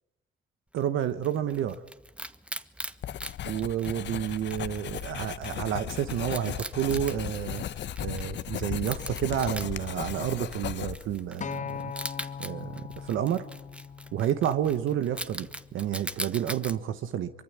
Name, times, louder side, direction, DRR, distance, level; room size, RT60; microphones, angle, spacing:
voice 1, 0.7-1.8 3.4-7.6 8.0-11.9 12.4-13.5 14.1-17.3, right 10 dB, 80° right, 1.3 m, -30 dB
Wild animals, 0.8-16.8, right 1 dB, 5° right, 1.3 m, -42 dB
Writing, 3.0-11.2, left 11 dB, 65° left, 0.9 m, -36 dB
Acoustic guitar, 11.4-15.7 16.5-16.6, left 7 dB, 40° left, 1.0 m, -40 dB
24.0 x 24.0 x 8.7 m
cardioid pair, 90°, 20 cm